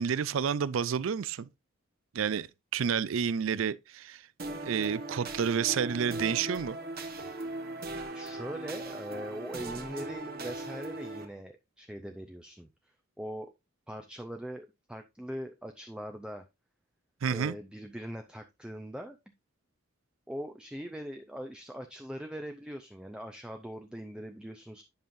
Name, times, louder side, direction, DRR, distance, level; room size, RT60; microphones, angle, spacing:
voice 1, 0.0-1.5 2.1-2.5 2.7-4.2 4.6-6.8 17.2-17.6, right 7 dB, 75° right, 0.4 m, -30 dB
sound 1, 4.4-11.2, right 2 dB, 45° right, 1.1 m, -39 dB
voice 2, 8.1-12.7 13.2-13.5 13.9-16.4 17.3-19.2 20.3-24.8, equal, 5° right, 0.5 m, -41 dB
10.5 x 5.5 x 2.6 m
head